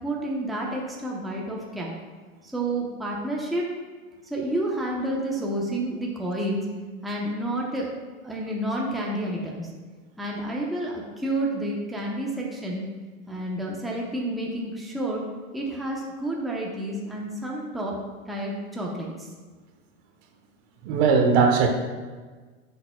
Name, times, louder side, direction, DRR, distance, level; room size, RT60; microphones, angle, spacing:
voice 1, 0.0-2.0 2.4-3.7 4.3-6.7 7.0-7.9 8.2-9.7 10.2-12.9 13.3-15.2 15.5-18.0 18.3-19.3, right 1 dB, ahead, -3 dB, 0.9 m, -30 dB
voice 2, 20.8-21.7, right 5 dB, 50° right, 4 dB, 1.1 m, -19 dB
10.0 x 6.9 x 2.3 m, 1.4 s
hypercardioid pair, 120°, 42 cm